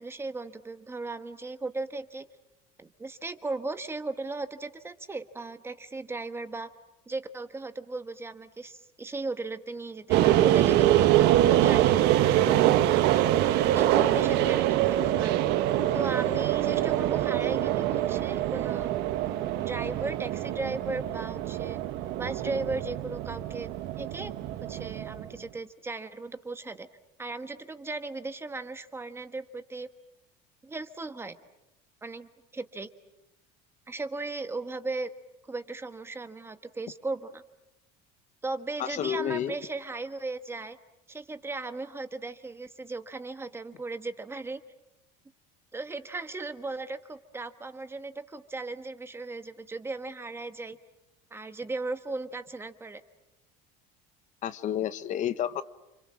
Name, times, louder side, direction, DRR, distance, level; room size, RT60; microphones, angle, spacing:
voice 1, 0.0-2.3 2.8-6.7 7.1-12.6 13.1-15.5 15.9-18.9 19.5-21.8 22.2-23.7 24.0-24.3 24.6-26.9 27.2-29.9 30.6-31.4 32.0-32.9 33.9-35.1 35.4-37.4 38.4-40.8 41.1-44.6 45.7-50.8 51.3-53.0, right 3 dB, 15° right, 9 dB, 1.3 m, -36 dB
sound 1, 10.1-25.3, right 13 dB, 65° right, 1.4 m, -24 dB
voice 2, 38.8-39.5 54.4-55.6, left 10 dB, 40° left, 12 dB, 1.1 m, -30 dB
30.0 x 26.5 x 7.5 m, 0.91 s
cardioid pair, 145°, 19 cm